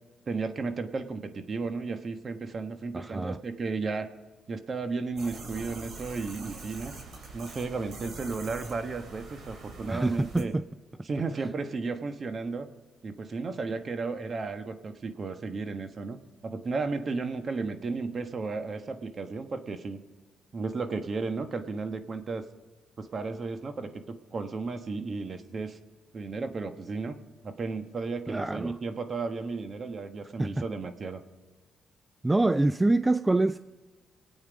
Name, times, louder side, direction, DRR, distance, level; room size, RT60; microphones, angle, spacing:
voice 1, 0.3-4.1 4.5-6.9 7.3-10.5 11.1-12.7 13.0-16.2 16.4-20.0 20.5-22.4 23.0-25.8 26.1-27.1 27.4-31.2, right 4 dB, 40° right, 1.2 m, -34 dB
voice 2, 2.9-3.4 9.9-10.6 28.3-28.8 30.4-30.6 32.2-33.6, right 2 dB, 15° right, 0.3 m, -26 dB
sound 1, 5.2-10.4, right 3 dB, 65° right, 3.3 m, -44 dB
24.5 x 8.8 x 5.1 m
cardioid pair, 90°, 0 cm